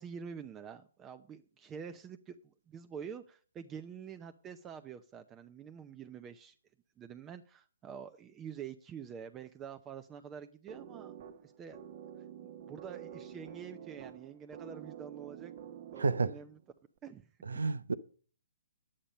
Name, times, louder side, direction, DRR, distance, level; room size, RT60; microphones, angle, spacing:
voice 1, 0.0-6.5 7.0-11.2 11.4-11.8 12.4-15.5 15.9-16.6 17.0-17.3, right 7 dB, 20° right, 0.6 m, -47 dB
sound 1, 10.7-16.6, right 9 dB, 45° right, 1.2 m, -48 dB
voice 2, 16.0-16.3 17.5-17.9, right 4 dB, 85° right, 0.8 m, -30 dB
10.0 x 8.8 x 5.4 m
hypercardioid pair, 140°, 0 cm